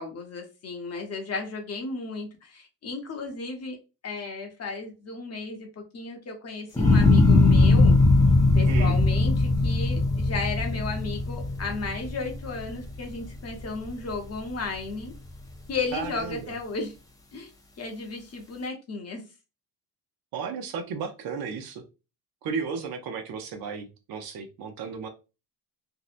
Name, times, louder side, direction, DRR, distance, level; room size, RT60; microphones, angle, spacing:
voice 1, 0.0-3.8 4.0-5.7 5.9-8.0 8.5-15.1 15.7-16.9 17.3-17.5 17.8-19.2, left 4 dB, 40° left, 0.7 m, -34 dB
sound 1, 6.8-13.1 13.5-14.1, left 3 dB, 10° left, 0.4 m, -20 dB
voice 2, 8.7-9.0 15.9-16.6 20.3-21.8 22.4-25.1, right 5 dB, 60° right, 0.6 m, -34 dB
2.7 x 2.0 x 2.4 m
cardioid pair, 120°, 40 cm